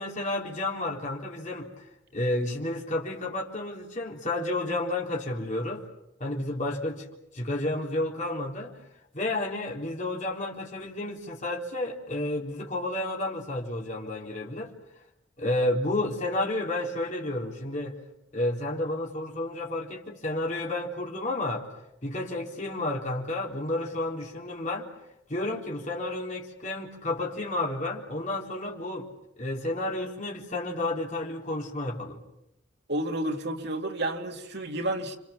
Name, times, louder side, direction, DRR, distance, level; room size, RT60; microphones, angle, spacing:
voice 1, 0.0-1.8 2.1-5.8 6.2-7.0 7.3-8.7 9.1-14.7 15.4-18.0 18.3-21.7 22.0-24.9 25.3-29.1 29.4-32.2, left 2 dB, 40° left, 3.7 m, -31 dB
voice 2, 32.9-35.2, right 1 dB, 65° right, 2.5 m, -30 dB
29.0 x 25.5 x 7.2 m
head